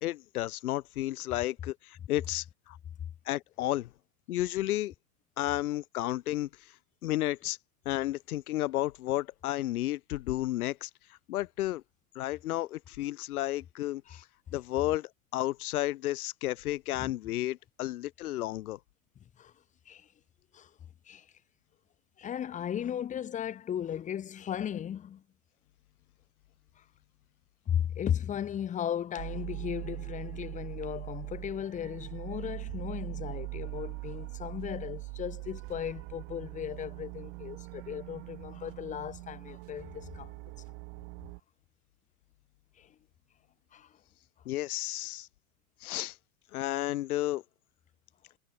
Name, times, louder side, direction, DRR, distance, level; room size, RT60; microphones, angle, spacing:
voice 1, 0.0-2.8 3.3-3.9 4.3-4.9 5.4-6.7 7.0-7.6 7.8-11.8 12.1-14.2 14.5-18.8 44.5-45.3 45.8-46.2 46.5-47.4, left 15 dB, 80° left, 0.8 m, -32 dB
voice 2, 22.2-25.2 27.7-40.3 42.8-42.9 43.7-43.9, left 9 dB, 15° left, 1.0 m, -36 dB
sound 1, 29.2-41.4, right 29 dB, 30° right, 0.6 m, -42 dB
hypercardioid pair, 135°, 44 cm